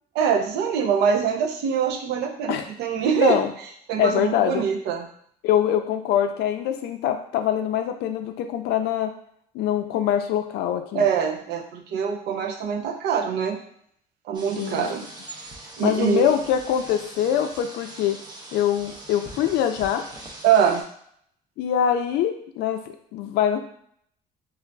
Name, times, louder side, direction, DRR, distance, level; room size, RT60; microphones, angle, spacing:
voice 1, 0.1-3.4 3.9-5.1 10.9-13.6 14.3-15.0 15.8-16.3 20.4-20.8, right 7 dB, 80° right, 2 dB, 0.5 m, -23 dB
voice 2, 3.2-3.5 4.0-4.7 5.4-9.1 9.5-11.0 14.6-14.8 15.8-18.2 18.5-20.0 21.6-22.8 23.1-23.6, left 10 dB, 80° left, 6 dB, 0.4 m, -23 dB
sound 1, 14.3-20.8, right 2 dB, 25° right, 0.6 m, -42 dB
3.8 x 2.4 x 2.2 m, 0.65 s
cardioid pair, 110°, 17 cm